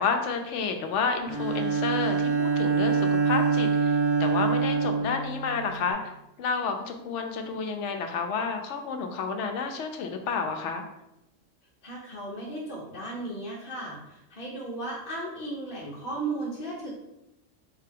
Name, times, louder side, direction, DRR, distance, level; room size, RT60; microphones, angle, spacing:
voice 1, 0.0-6.1 6.4-10.8, left 5 dB, 75° left, 5 dB, 0.9 m, -30 dB
Bowed string instrument, 1.3-5.9, right 5 dB, 25° right, 0.8 m, -25 dB
voice 2, 11.8-16.9, right 2 dB, 50° left, -5 dB, 0.9 m, -35 dB
3.9 x 3.3 x 3.4 m, 0.87 s
omnidirectional pair, 1.3 m